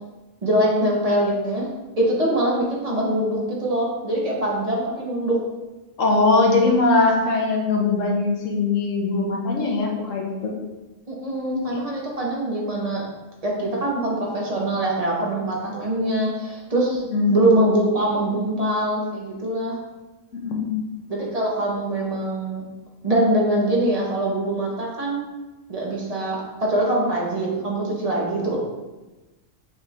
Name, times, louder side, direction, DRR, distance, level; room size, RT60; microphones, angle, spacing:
voice 1, 0.4-1.7 2.0-5.4 11.1-13.1 13.4-17.0 17.3-19.8 21.1-22.6 23.0-25.2 25.7-28.6, right 1 dB, 35° right, -3 dB, 0.9 m, -23 dB
voice 2, 6.0-10.5 11.7-11.8 17.1-17.4 20.3-20.8, left 3 dB, 80° left, 0 dB, 1.2 m, -21 dB
5.5 x 2.5 x 3.4 m, 1.1 s
omnidirectional pair, 1.3 m